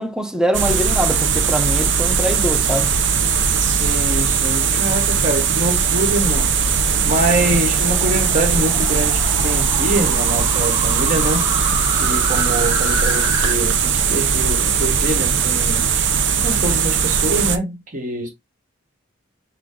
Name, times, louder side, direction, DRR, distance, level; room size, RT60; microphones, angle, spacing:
voice 1, 0.0-2.9, right 1 dB, 5° right, 0.5 m, -23 dB
sound 1, 0.5-17.6, right 6 dB, 70° right, 0.6 m, -19 dB
voice 2, 3.8-6.5 7.0-11.5 12.0-15.9 16.4-18.3, right 1 dB, 40° right, 1.4 m, -24 dB
sound 2, 5.8-13.5, right 1 dB, 25° right, 1.7 m, -29 dB
6.2 x 2.3 x 3.7 m
head